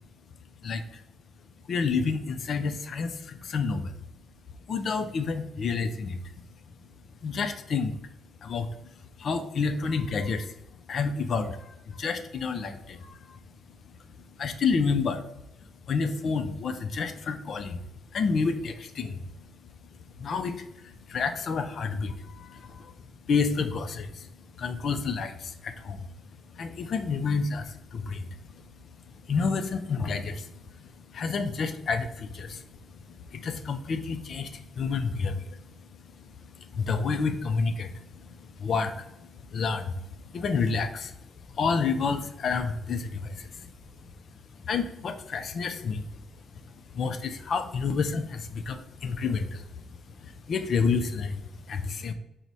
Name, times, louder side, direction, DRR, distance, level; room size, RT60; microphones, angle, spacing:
voice 1, 0.6-1.0 1.7-3.9 4.7-6.2 7.2-8.0 8.4-8.7 9.2-10.5 10.9-13.2 14.4-15.2 15.9-17.8 18.1-19.2 20.2-22.9 23.3-24.3 24.6-26.0 26.6-28.6 29.3-30.5 31.1-32.6 33.3-35.6 36.7-38.3 38.6-39.9 40.2-41.1 41.5-43.5 44.7-46.0 46.9-49.7 50.2-52.1, left 5 dB, 55° left, 8 dB, 0.4 m, -29 dB
4.6 x 2.1 x 4.0 m, 0.89 s
cardioid pair, 90°, 0 cm